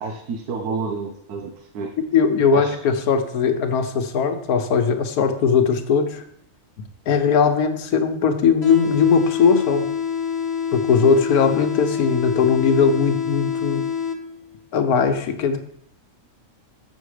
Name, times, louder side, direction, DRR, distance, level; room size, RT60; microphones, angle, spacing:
voice 1, 0.0-1.9 2.5-2.7, right 4 dB, 85° right, 4 dB, 1.3 m, -29 dB
voice 2, 2.0-6.2 7.1-9.8 10.7-13.9 14.7-15.6, left 6 dB, 80° left, 7 dB, 1.3 m, -19 dB
sound 1, 8.6-14.6, left 7 dB, 50° left, 1.1 m, -26 dB
7.3 x 6.3 x 4.9 m, 0.68 s
omnidirectional pair, 1.6 m